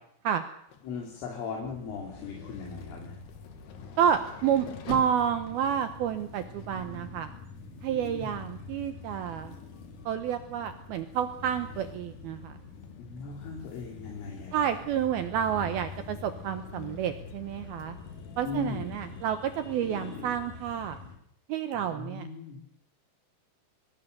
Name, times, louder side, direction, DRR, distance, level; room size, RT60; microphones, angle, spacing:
sound 1, 0.7-19.2, left 7 dB, 60° left, 3.7 m, -49 dB
voice 1, 0.8-3.2 7.9-8.4 13.0-14.7 18.4-18.9 21.7-22.6, left 5 dB, 80° left, -1 dB, 5.7 m, -38 dB
sound 2, 1.6-21.2, left 4 dB, 45° left, 4.1 m, -46 dB
voice 2, 4.0-7.3 7.8-9.6 10.1-12.6 14.5-18.0 18.4-21.0 21.5-22.3, right 9 dB, 80° right, 9 dB, 2.2 m, -30 dB
23.0 x 20.5 x 6.7 m, 0.71 s
omnidirectional pair, 5.6 m